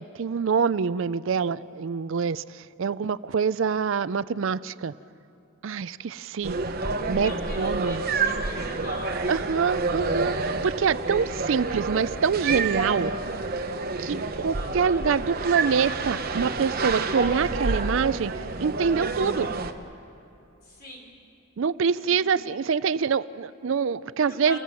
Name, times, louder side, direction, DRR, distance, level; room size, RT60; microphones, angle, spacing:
voice 1, 0.0-4.9 5.6-6.6 7.1-7.3 7.6-8.0 9.3-13.1 14.0-19.5 21.6-24.6, right 6 dB, 60° right, 17 dB, 0.4 m, -25 dB
sound 1, 6.4-19.7, right 3 dB, 45° right, 1.0 m, -29 dB
voice 2, 7.1-9.4 14.5-15.0 20.6-21.1 22.0-22.5 24.1-24.6, equal, 45° left, 0 dB, 4.2 m, -43 dB
30.0 x 16.0 x 7.5 m, 2.8 s
head